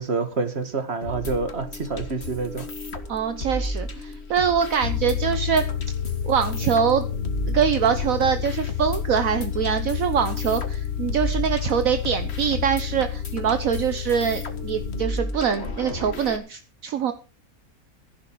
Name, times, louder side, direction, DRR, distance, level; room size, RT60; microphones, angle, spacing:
voice 1, 0.0-2.7, right 4 dB, 45° right, 9 dB, 2.2 m, -27 dB
sound 1, 1.0-16.4, left 1 dB, 45° left, 2.0 m, -34 dB
voice 2, 3.1-5.6 6.2-7.1 7.5-17.1, right 7 dB, 65° right, 9 dB, 1.4 m, -24 dB
sound 2, 4.8-15.1, left 9 dB, 85° left, 1.4 m, -30 dB
14.5 x 11.0 x 4.7 m, 0.34 s
omnidirectional pair, 1.6 m